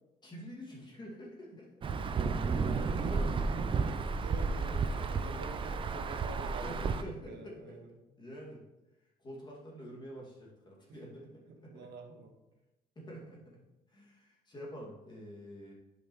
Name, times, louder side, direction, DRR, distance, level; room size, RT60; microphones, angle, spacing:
voice 1, 0.2-1.9 2.4-5.4 6.6-7.8 8.2-8.6 9.2-11.9 13.0-13.6 13.9-15.7, equal, 25° left, -3 dB, 2.3 m, -47 dB
Insect / Thunder / Rain, 1.8-7.0, right 4 dB, 30° right, 0.5 m, -32 dB
voice 2, 4.1-4.7 5.1-7.9 10.9-11.0 11.7-12.3, right 3 dB, 75° right, 2 dB, 1.3 m, -47 dB
10.0 x 5.3 x 3.1 m, 0.98 s
cardioid pair, 110°, 17 cm